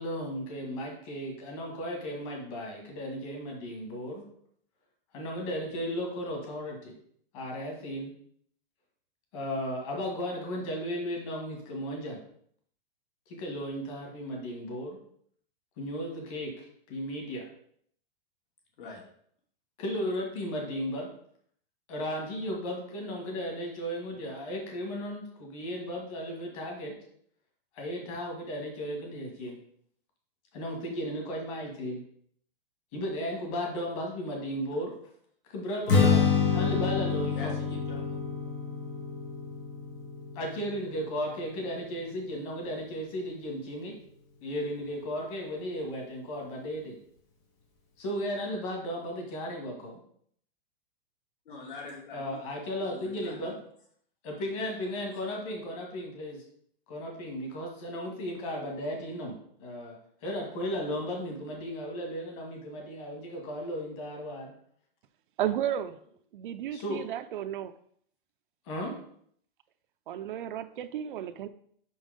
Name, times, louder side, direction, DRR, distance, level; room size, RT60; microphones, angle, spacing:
voice 1, 0.0-4.2 5.1-6.9 7.3-8.1 9.3-12.2 13.3-15.0 15.8-16.5 16.9-17.5 19.8-21.1 21.9-26.9 27.7-29.6 30.5-32.0 32.9-34.9 35.5-36.2 36.5-37.5 40.4-44.0 44.4-47.0 48.0-50.0 52.1-53.5 54.2-56.4 56.9-60.0 60.2-64.5 66.7-67.0 68.7-69.0, equal, 35° left, 1 dB, 2.1 m, -35 dB
Strum, 35.9-42.2, left 5 dB, 10° left, 0.4 m, -28 dB
voice 2, 36.0-36.3 37.3-38.2 51.4-52.4 53.0-53.5, left 3 dB, 60° left, -1 dB, 2.8 m, -43 dB
voice 3, 65.4-66.0 66.3-67.7 70.1-71.5, right 10 dB, 60° right, 10 dB, 0.5 m, -33 dB
5.8 x 5.5 x 5.1 m, 0.63 s
supercardioid pair, 175°, 29 cm